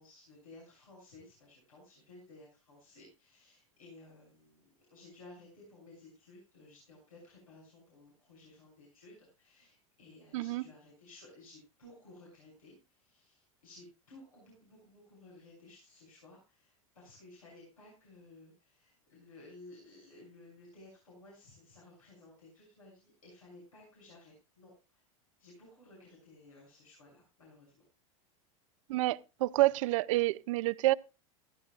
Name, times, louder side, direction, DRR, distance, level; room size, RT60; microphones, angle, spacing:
voice 1, 0.0-25.0 25.4-27.8, left 2 dB, 85° left, 6.7 m, -56 dB
voice 2, 10.3-10.6 28.9-30.9, right 18 dB, 65° right, 0.6 m, -28 dB
15.5 x 14.5 x 2.4 m
hypercardioid pair, 95°, 18 cm